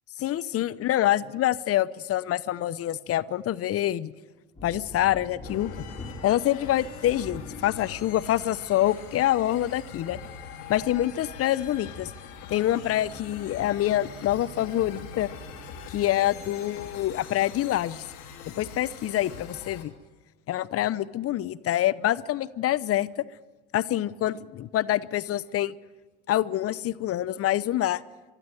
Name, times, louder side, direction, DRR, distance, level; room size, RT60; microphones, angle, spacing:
voice 1, 0.2-4.1 4.6-5.7 6.2-10.2 10.7-12.1 12.5-15.3 15.9-18.0 18.5-19.9 20.5-23.2 23.7-25.7 26.3-28.0, left 13 dB, 40° left, 16 dB, 0.8 m, -26 dB
sound 1, 4.5-17.3, left 1 dB, 15° left, 4.4 m, -47 dB
sound 2, 5.4-19.8, left 6 dB, 65° left, 3.2 m, -43 dB
sound 3, 12.7-19.0, right 4 dB, 20° right, 5.9 m, -58 dB
24.0 x 12.5 x 9.3 m, 1.2 s
hypercardioid pair, 75°, 34 cm